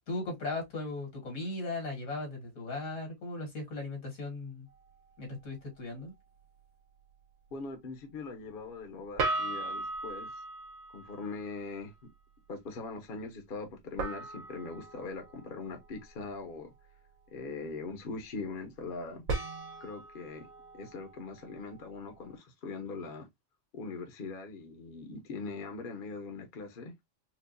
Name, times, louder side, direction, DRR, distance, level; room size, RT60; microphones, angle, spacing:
voice 1, 0.1-4.7 5.2-6.1, left 2 dB, 80° left, 2.1 m, -37 dB
sound 1, 4.7-4.9 9.2-11.6 14.0-16.5 19.3-22.3, right 3 dB, 90° right, 1.4 m, -38 dB
voice 2, 7.5-10.4 10.9-11.9 12.5-16.7 17.3-19.2 19.8-20.5 20.7-23.3 23.7-26.9, left 4 dB, 45° left, 0.9 m, -41 dB
4.5 x 2.3 x 2.5 m
omnidirectional pair, 1.4 m